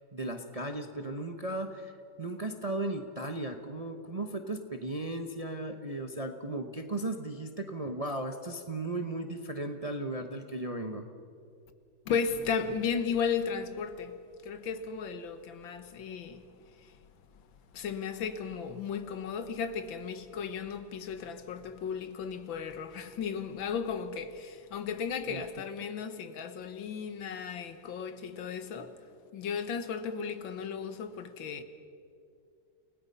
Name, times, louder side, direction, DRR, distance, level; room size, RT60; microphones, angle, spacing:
voice 1, 0.1-1.9 2.2-11.0 25.3-25.4, right 2 dB, 30° right, 0.7 m, -36 dB
voice 2, 12.1-16.5 16.8-17.0 17.7-29.0 29.3-31.6, left 6 dB, 80° left, 1.9 m, -35 dB
29.0 x 18.0 x 5.5 m
omnidirectional pair, 2.1 m